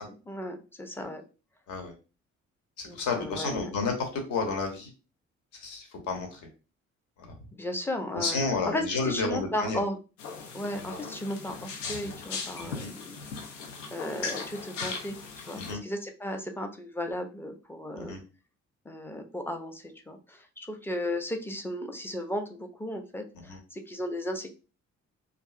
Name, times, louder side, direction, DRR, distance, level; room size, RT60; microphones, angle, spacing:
voice 1, 0.3-1.2 2.8-3.7 7.5-8.4 8.7-10.0 10.5-13.2 13.9-15.2 15.5-18.1 18.9-24.5, left 1 dB, 5° left, 5 dB, 0.4 m, -35 dB
voice 2, 2.8-4.9 5.5-6.4 7.2-7.4 8.1-9.8 12.6-12.9 15.6-15.8 18.0-18.2 23.5-23.6, left 4 dB, 55° left, 4 dB, 0.8 m, -31 dB
sound 1, 10.2-15.7, left 5 dB, 80° left, 0.5 m, -38 dB
2.6 x 2.4 x 2.4 m, 0.33 s
figure-of-eight pair, 40°, 37 cm